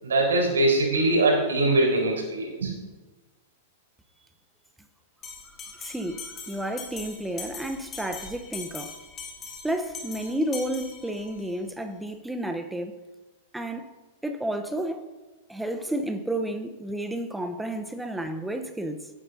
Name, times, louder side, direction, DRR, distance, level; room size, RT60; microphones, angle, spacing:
voice 1, 0.0-2.7, right 2 dB, 70° right, 4.3 m, -22 dB
Bell, 5.2-11.5, left 5 dB, 25° left, 2.2 m, -41 dB
voice 2, 5.6-9.0 9.6-12.9 13.5-13.9 14.2-15.1 15.5-19.1, right 1 dB, 5° right, 0.9 m, -31 dB
17.0 x 10.0 x 2.7 m
figure-of-eight pair, 100°, 0 cm